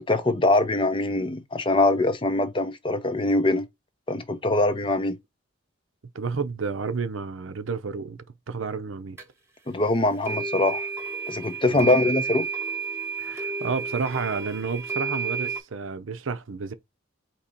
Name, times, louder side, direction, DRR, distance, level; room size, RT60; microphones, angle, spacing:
voice 1, 0.0-3.7 4.1-5.2 9.7-10.9 11.3-12.5, left 2 dB, 25° left, 0.6 m, -23 dB
voice 2, 6.1-9.2 11.6-12.1 13.2-16.7, right 4 dB, 75° right, 0.6 m, -31 dB
sound 1, 9.2-9.3 10.2-15.6, right 5 dB, 15° right, 1.0 m, -31 dB
4.4 x 3.0 x 4.0 m
head